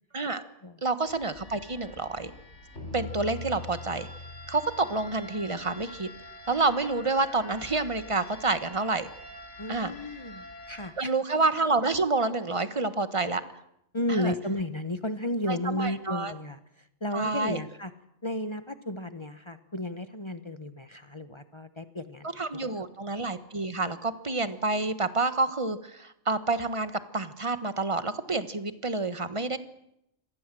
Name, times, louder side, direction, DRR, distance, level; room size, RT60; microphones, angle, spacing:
voice 1, 0.8-2.3 2.9-4.1 4.5-6.1 6.5-9.1 9.7-9.9 11.0-13.4 14.1-14.3 15.5-16.3 17.1-17.6 22.4-29.6, right 3 dB, 25° right, 11 dB, 1.4 m, -28 dB
sound 1, 1.1-10.9, left 2 dB, 70° left, 4.9 m, -44 dB
voice 2, 9.6-11.1 13.9-17.9 18.2-22.3 22.5-22.9, left 1 dB, 25° left, 10 dB, 1.1 m, -33 dB
25.0 x 19.0 x 7.7 m, 0.80 s
omnidirectional pair, 1.2 m